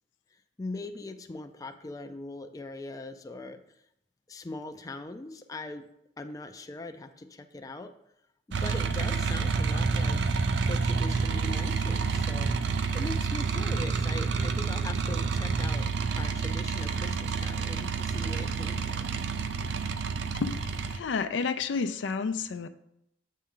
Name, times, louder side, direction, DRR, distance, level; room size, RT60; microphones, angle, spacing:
voice 1, 0.6-3.6 4.3-5.8 6.2-7.9 8.5-10.2 10.7-12.5 12.9-15.9 16.2-19.2, left 2 dB, 20° left, 6 dB, 0.4 m, -40 dB
sound 1, 8.5-21.0, right 5 dB, 70° right, 0.5 m, -29 dB
voice 2, 20.9-22.7, left 5 dB, 80° left, 11 dB, 0.4 m, -30 dB
7.3 x 5.5 x 3.8 m, 0.78 s
head